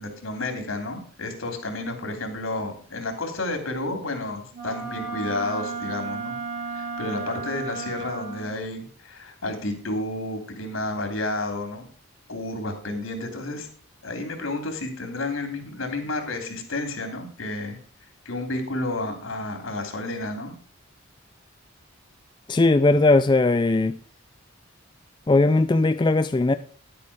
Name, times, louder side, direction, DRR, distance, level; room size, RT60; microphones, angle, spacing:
voice 1, 0.0-6.4 6.7-11.9 12.3-13.7 14.0-17.8 18.2-20.5, left 2 dB, 70° left, 6 dB, 3.1 m, -31 dB
Wind instrument woodwind instrument, 4.5-8.6, right 4 dB, 45° right, 4.1 m, -33 dB
voice 2, 22.5-24.0 25.3-26.5, left 2 dB, 20° left, 10 dB, 0.4 m, -19 dB
11.0 x 8.7 x 4.8 m, 0.44 s
head